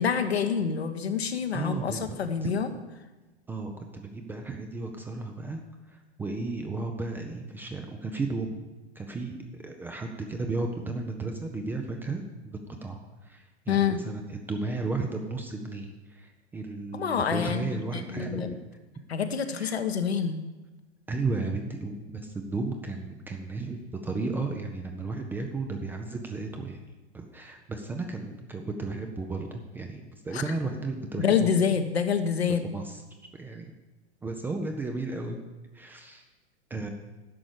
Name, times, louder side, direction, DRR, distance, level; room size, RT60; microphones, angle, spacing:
voice 1, 0.0-2.7 13.7-14.0 16.9-18.5 19.1-20.4 30.3-30.4 31.2-32.6, left 7 dB, 70° left, 7 dB, 1.2 m, -27 dB
voice 2, 1.5-2.5 3.5-5.6 5.9-8.6 9.0-9.4 9.6-18.6 19.6-19.8 21.1-26.9 27.1-31.5 32.5-33.0 33.4-33.7 34.2-35.4 35.7-36.2 36.7-36.9, right 3 dB, 5° right, 3 dB, 0.4 m, -34 dB
11.0 x 6.1 x 6.8 m, 1.1 s
figure-of-eight pair, 105°, 33 cm